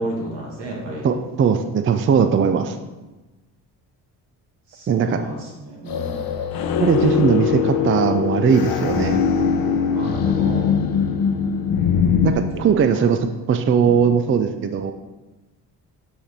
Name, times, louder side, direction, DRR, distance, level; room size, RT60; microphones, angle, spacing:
voice 1, 0.0-1.1 4.7-6.2 9.9-10.8 12.5-13.4 13.8-14.1, right 1 dB, 80° right, -3 dB, 2.2 m, -32 dB
voice 2, 1.0-2.8 4.9-5.2 6.8-9.2 12.2-12.3 12.6-13.2 13.5-14.9, right 6 dB, 30° right, 8 dB, 0.4 m, -19 dB
sound 1, 5.9-12.3, left 7 dB, 60° left, 0.7 m, -21 dB
8.2 x 3.4 x 4.2 m, 1.1 s
supercardioid pair, 70°, 40 cm